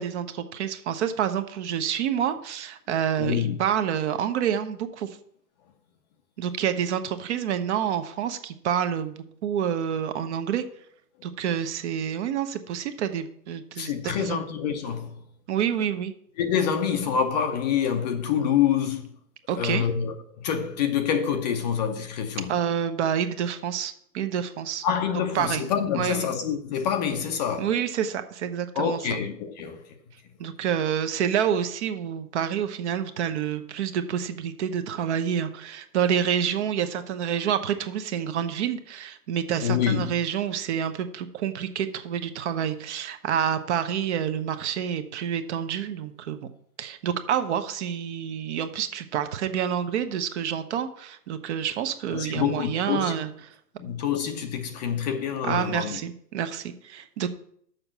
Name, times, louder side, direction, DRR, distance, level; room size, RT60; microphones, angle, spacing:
voice 1, 0.0-5.1 6.4-10.6 11.2-14.4 15.5-16.1 19.5-19.9 22.5-24.8 25.3-25.6 26.0-26.2 27.6-29.2 30.4-46.5 46.8-53.3 55.4-57.4, right 9 dB, 45° right, 1.0 m, -28 dB
voice 2, 3.2-3.6 13.8-15.2 16.4-19.1 19.5-22.6 24.8-27.8 28.7-29.9 39.6-40.1 52.1-53.2 53.8-56.0, left 8 dB, 30° left, 0.6 m, -26 dB
6.7 x 5.5 x 7.3 m
hypercardioid pair, 130°, 47 cm